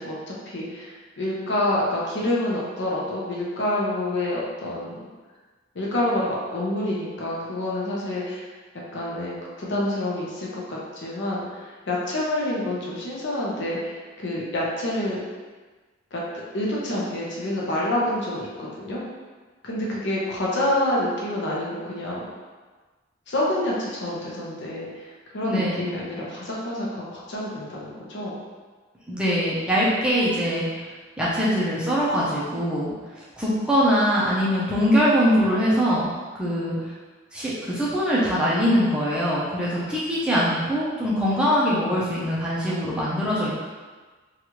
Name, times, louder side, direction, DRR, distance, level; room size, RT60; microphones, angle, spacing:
voice 1, 0.0-5.0 5.7-8.5 8.9-15.2 16.1-16.2 16.5-19.0 19.6-22.2 23.3-28.4, left 1 dB, 60° left, -5 dB, 0.7 m, -27 dB
voice 2, 25.4-25.9 29.1-30.9 31.2-36.1 36.4-36.8 37.3-43.6, equal, 5° right, -8 dB, 0.5 m, -22 dB
3.0 x 2.4 x 2.9 m, 1.4 s
head